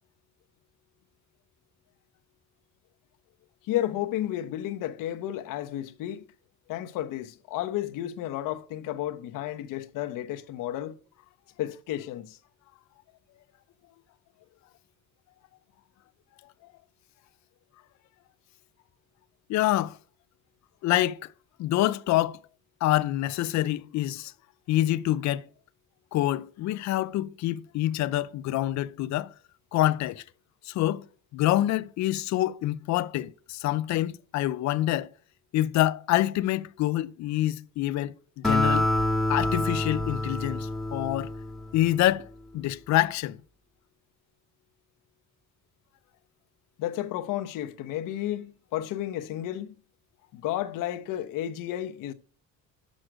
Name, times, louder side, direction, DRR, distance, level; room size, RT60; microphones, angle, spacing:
voice 1, 3.6-6.2 6.7-11.0 11.6-12.4 46.8-49.7 50.3-52.1, left 13 dB, 70° left, 0.9 m, -32 dB
voice 2, 19.5-20.0 20.8-21.2 21.6-22.4 22.8-24.3 24.7-25.5 26.1-29.3 29.7-30.2 30.6-31.1 31.3-35.1 35.5-38.9 39.3-41.3 41.7-42.3 42.5-43.4, left 14 dB, 55° left, 0.5 m, -26 dB
Acoustic guitar, 38.4-42.0, left 1 dB, ahead, 1.5 m, -27 dB
6.4 x 6.2 x 6.2 m
cardioid pair, 120°, 33 cm